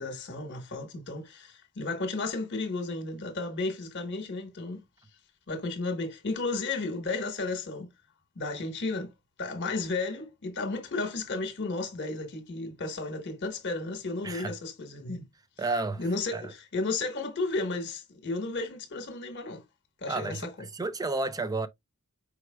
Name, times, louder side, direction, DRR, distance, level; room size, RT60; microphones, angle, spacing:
voice 1, 0.0-4.8 5.5-7.9 8.4-9.1 9.4-15.2 16.0-19.6 20.0-20.5, left 3 dB, 55° left, 1.2 m, -33 dB
voice 2, 15.6-16.0 16.3-16.5 20.1-20.5 20.7-21.7, right 3 dB, 15° right, 0.4 m, -31 dB
4.9 x 4.6 x 2.2 m
head